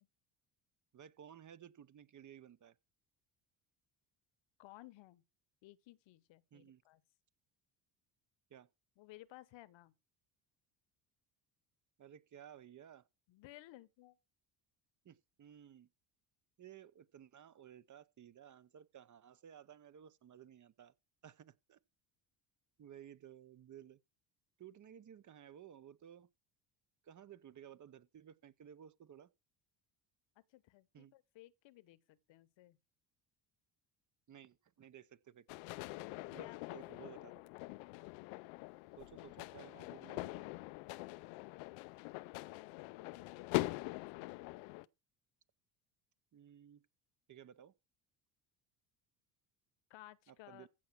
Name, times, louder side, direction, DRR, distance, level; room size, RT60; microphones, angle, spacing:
voice 1, 0.9-2.8 6.5-6.8 8.5-8.7 12.0-13.0 15.0-15.9 16.6-20.9 21.2-21.8 22.8-24.0 24.6-26.3 27.0-29.3 30.9-31.1 34.3-35.5 36.3-37.5 39.0-40.5 46.3-46.9 47.3-47.7 50.3-50.7, right 9 dB, 35° right, 0.8 m, -56 dB
voice 2, 4.6-5.2 5.6-7.0 9.0-9.9 13.3-14.2 30.5-32.8 36.1-37.1 42.3-44.5 49.9-50.7, left 16 dB, 65° left, 1.0 m, -58 dB
sound 1, 35.5-44.9, left 22 dB, 85° left, 0.6 m, -43 dB
15.0 x 5.8 x 6.0 m
supercardioid pair, 75°, 49 cm